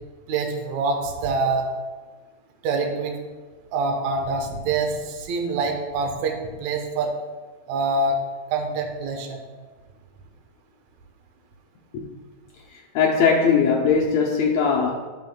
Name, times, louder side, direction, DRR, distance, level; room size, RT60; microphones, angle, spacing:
voice 1, 0.3-1.7 2.6-3.2 3.7-7.1 7.7-8.2 8.5-9.4, right 3 dB, 65° right, 2.0 m, -25 dB
voice 2, 12.7-14.9, left 5 dB, 75° left, 1.6 m, -20 dB
13.0 x 7.2 x 2.3 m
omnidirectional pair, 3.9 m